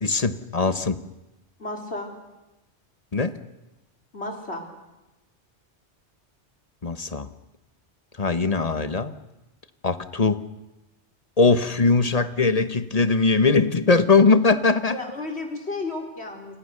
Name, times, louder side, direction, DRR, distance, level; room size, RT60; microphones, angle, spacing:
voice 1, 0.0-1.0 3.1-3.4 6.8-7.3 8.2-9.1 9.8-10.5 11.4-15.0, left 4 dB, 35° left, 12 dB, 1.2 m, -20 dB
voice 2, 1.6-2.1 4.1-4.6 14.9-16.6, left 2 dB, 65° left, 2 dB, 4.6 m, -32 dB
29.5 x 25.0 x 6.7 m, 1.0 s
omnidirectional pair, 1.2 m